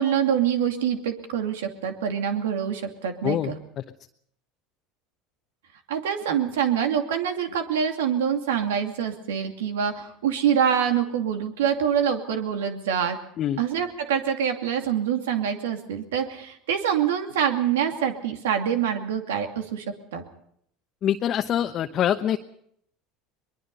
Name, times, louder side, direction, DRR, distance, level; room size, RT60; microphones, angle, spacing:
voice 1, 0.0-3.6 5.9-13.2 13.6-19.8 20.1-20.2, right 8 dB, 85° right, 5 dB, 2.5 m, -25 dB
voice 2, 21.0-22.4, left 10 dB, 45° left, 5 dB, 1.0 m, -24 dB
22.5 x 21.5 x 5.5 m, 0.70 s
hypercardioid pair, 85°, 0 cm